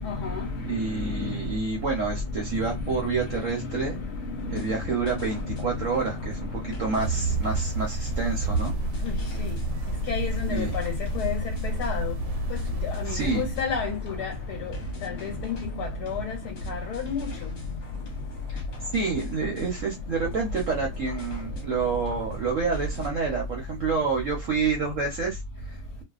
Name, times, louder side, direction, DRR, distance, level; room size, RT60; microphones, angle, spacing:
voice 1, 0.0-1.4 2.5-4.7 5.1-5.6 9.0-9.6 10.1-12.2 12.5-17.5, left 4 dB, 75° left, 1.1 m, -31 dB
voice 2, 0.6-4.0 4.5-8.7 10.5-10.7 13.0-13.4 18.5-18.6 18.9-26.0, right 4 dB, 60° right, 0.9 m, -28 dB
sound 1, 4.4-23.1, left 1 dB, 50° left, 1.0 m, -41 dB
sound 2, 7.0-13.7, right 2 dB, 85° right, 1.2 m, -30 dB
2.6 x 2.2 x 2.3 m
omnidirectional pair, 1.8 m